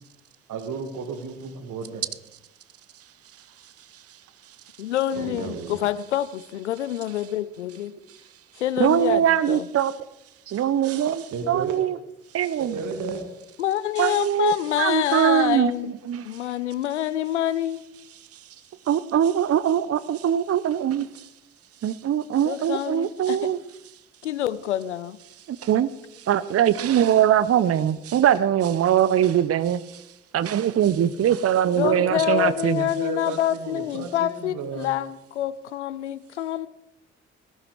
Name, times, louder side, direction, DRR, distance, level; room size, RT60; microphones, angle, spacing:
voice 1, 0.5-2.0 5.1-5.8 11.3-11.8 12.6-13.2 31.8-32.5 32.8-34.9, right 5 dB, 60° right, 7 dB, 1.7 m, -33 dB
voice 2, 4.8-7.9 8.6-9.7 13.6-15.9 16.2-17.8 22.5-23.5 24.2-25.2 31.8-36.7, left 12 dB, 90° left, 18 dB, 0.5 m, -27 dB
voice 3, 8.8-9.9 10.5-12.0 12.3-12.8 14.0-15.7 16.1-16.2 18.9-21.1 21.8-23.6 25.5-25.9 26.2-30.0 30.3-32.9, right 10 dB, 45° right, 17 dB, 0.8 m, -22 dB
18.5 x 12.0 x 4.8 m, 0.90 s
figure-of-eight pair, 45°, 34 cm